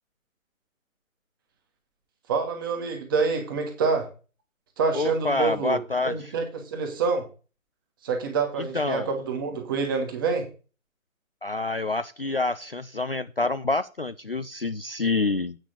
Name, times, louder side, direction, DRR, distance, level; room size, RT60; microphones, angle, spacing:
voice 1, 2.3-4.1 4.8-5.8 6.0-7.2 8.0-10.5, right 5 dB, 15° right, 1.4 m, -27 dB
voice 2, 4.9-6.3 8.7-9.1 11.4-15.6, left 3 dB, 45° left, 0.4 m, -27 dB
9.0 x 5.2 x 6.8 m
figure-of-eight pair, 150°, 41 cm